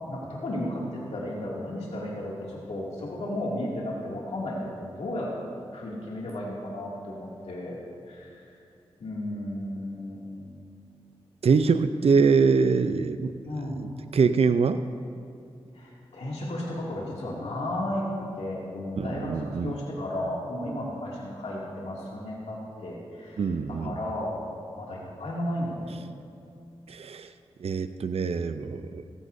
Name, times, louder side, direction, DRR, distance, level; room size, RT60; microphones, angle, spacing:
voice 1, 0.0-5.3 5.7-8.5 9.0-10.5 13.5-13.9 15.7-24.4 24.7-26.0, left 1 dB, 80° left, -5 dB, 2.5 m, -34 dB
voice 2, 11.4-13.4 13.8-14.8 19.0-19.7 23.4-24.0 26.9-27.3 27.6-29.0, right 5 dB, 65° right, 10 dB, 0.6 m, -24 dB
16.5 x 15.5 x 2.7 m, 2.5 s
cardioid pair, 45°, 11 cm